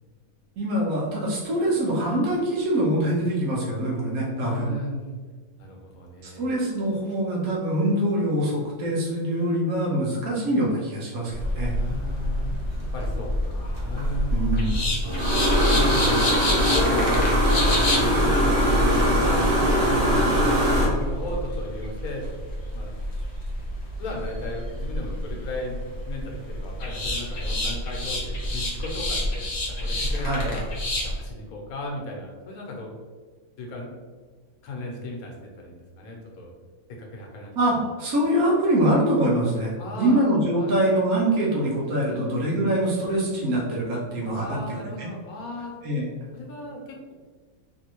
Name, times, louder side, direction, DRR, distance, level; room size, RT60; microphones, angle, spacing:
voice 1, 0.6-4.7 6.2-11.7 14.3-14.8 30.2-30.5 37.5-39.7 40.0-44.6 45.0-45.1 45.8-46.1, right 1 dB, 85° right, -4 dB, 1.4 m, -24 dB
voice 2, 4.5-5.2 5.6-6.5 11.8-12.5 12.9-14.4 15.7-16.1 16.6-22.3 22.7-22.9 24.0-30.7 31.0-32.9 33.6-33.9 34.6-36.5 36.9-37.8 39.8-40.2 40.5-40.8 42.1-42.8 44.2-45.7 46.3-47.1, left 1 dB, 85° left, 0 dB, 1.2 m, -36 dB
sound 1, 11.3-31.2, left 1 dB, 45° left, 0.5 m, -29 dB
sound 2, 11.4-20.9, equal, 40° right, 1.2 m, -22 dB
3.7 x 2.6 x 2.9 m, 1.5 s
omnidirectional pair, 1.5 m